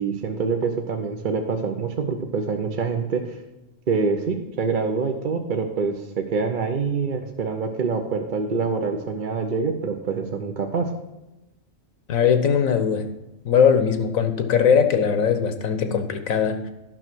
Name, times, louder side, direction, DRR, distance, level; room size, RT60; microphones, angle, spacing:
voice 1, 0.0-3.4 3.9-10.9, right 5 dB, 45° right, 4 dB, 0.8 m, -25 dB
voice 2, 12.1-13.0 13.4-16.7, left 7 dB, 85° left, 9 dB, 1.4 m, -20 dB
11.0 x 6.1 x 6.1 m, 1.0 s
omnidirectional pair, 1.4 m